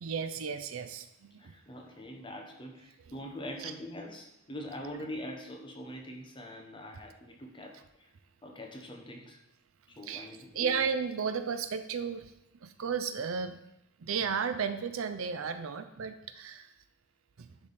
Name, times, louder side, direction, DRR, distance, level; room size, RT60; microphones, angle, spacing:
voice 1, 0.0-1.5 3.6-3.7 10.0-12.3 12.6-13.6 14.0-16.7 17.4-17.5, right 6 dB, 75° right, 10 dB, 0.5 m, -34 dB
voice 2, 1.4-8.1 8.4-9.4 10.0-10.7, left 1 dB, 20° left, 1 dB, 0.9 m, -43 dB
10.0 x 3.5 x 4.2 m, 0.88 s
head